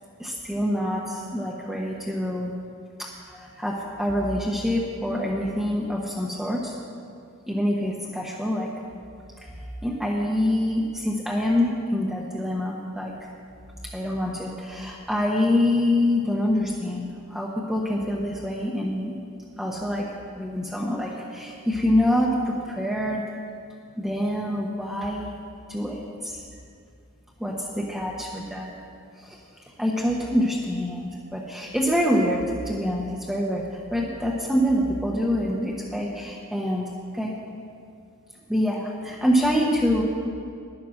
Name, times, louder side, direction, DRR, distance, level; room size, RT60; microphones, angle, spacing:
voice 1, 0.2-2.5 3.0-6.7 7.5-8.7 9.4-13.1 13.9-19.1 19.6-20.1 20.4-23.2 24.0-25.3 25.7-26.4 27.4-28.7 29.2-29.4 29.8-36.8 37.1-37.3 38.5-40.0, left 1 dB, ahead, -4 dB, 0.9 m, -26 dB
11.0 x 9.6 x 6.3 m, 2.4 s
head